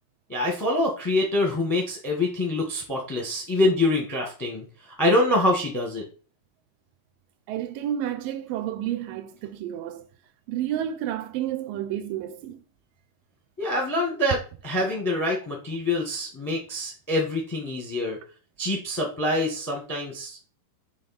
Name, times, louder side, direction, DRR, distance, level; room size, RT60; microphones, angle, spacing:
voice 1, 0.3-4.6 5.0-6.0 13.6-14.4 14.6-18.2 18.6-20.5, left 1 dB, 15° left, 0.7 m, -25 dB
voice 2, 7.5-10.1 10.5-12.6, right 11 dB, 85° right, 2.4 m, -30 dB
7.4 x 3.3 x 4.4 m
omnidirectional pair, 3.9 m